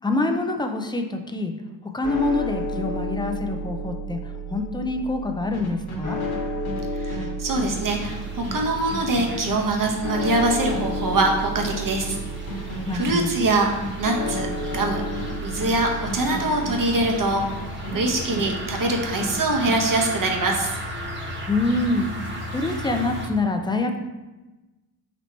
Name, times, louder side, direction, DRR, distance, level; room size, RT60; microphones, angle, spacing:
voice 1, 0.0-1.5 1.9-4.2 4.5-6.2 12.9-13.3 21.5-22.1 22.5-24.0, left 2 dB, 10° left, 4 dB, 0.5 m, -25 dB
sound 1, 2.0-20.3, equal, 40° left, 1.2 m, -33 dB
sound 2, 5.5-18.5 18.7-19.8, equal, 80° left, 1.2 m, -35 dB
voice 2, 6.9-12.2 12.9-13.7 14.0-14.5 14.7-15.0 15.4-17.4 17.9-20.8, right 2 dB, 45° right, 1 dB, 1.0 m, -23 dB
sound 3, 7.7-23.3, equal, 25° right, 1.2 m, -36 dB
4.1 x 2.9 x 4.3 m, 1.1 s
cardioid pair, 60°, 48 cm